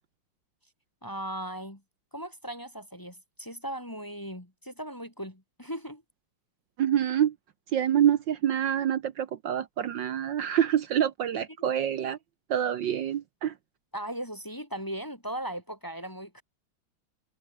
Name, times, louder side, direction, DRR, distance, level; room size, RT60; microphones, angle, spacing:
voice 1, 1.0-1.8 2.1-6.0 11.6-11.7 13.9-16.4, right 1 dB, 10° left, 1.9 m, -38 dB
voice 2, 6.8-7.3 7.7-12.2 12.5-13.5, right 10 dB, 65° right, 1.6 m, -26 dB
omnidirectional pair, 2.3 m